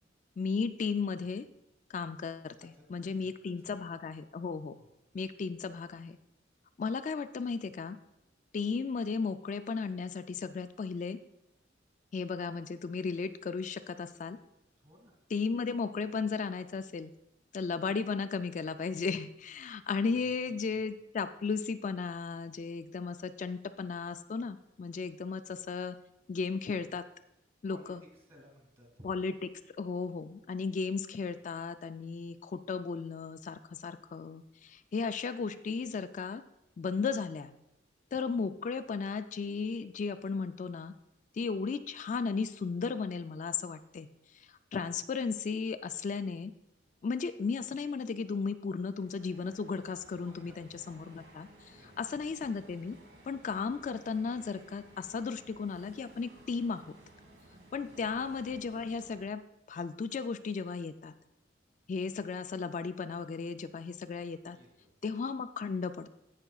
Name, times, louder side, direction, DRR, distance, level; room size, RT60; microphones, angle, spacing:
voice 1, 0.4-1.5 1.9-4.7 5.1-6.2 6.8-8.0 8.5-11.2 12.1-14.4 15.3-17.1 17.5-26.0 26.3-27.0 27.6-28.0 29.0-29.5 29.8-36.4 36.8-37.5 38.1-40.9 41.3-44.1 44.3-46.5 47.0-53.0 53.2-56.8 57.7-59.4 59.7-61.1 61.9-64.6 65.0-66.1, left 5 dB, 40° left, 10 dB, 0.3 m, -35 dB
voice 2, 2.6-3.3 3.6-3.8 4.8-4.9 14.8-15.1 20.2-20.3 20.7-20.8 27.7-27.9 28.3-29.1 50.2-50.6 51.7-51.9 57.9-58.1 64.5-64.9, equal, 35° right, 0 dB, 2.3 m, -58 dB
sound 1, 48.8-59.3, right 1 dB, 90° right, 1.7 m, -57 dB
17.0 x 5.8 x 2.3 m, 0.85 s
head